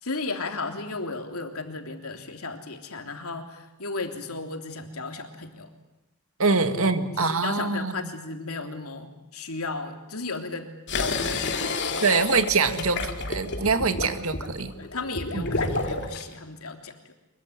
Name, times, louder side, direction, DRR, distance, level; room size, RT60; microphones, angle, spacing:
voice 1, 0.0-5.7 6.4-12.0 13.8-13.9 14.8-17.1, left 3 dB, 85° left, 4 dB, 3.4 m, -35 dB
voice 2, 6.4-7.9 12.0-14.7 15.3-15.4, right 4 dB, 70° right, 9 dB, 2.0 m, -24 dB
sound 1, 10.9-16.2, left 3 dB, 55° left, 2.7 m, -30 dB
25.0 x 23.0 x 9.9 m, 0.95 s
head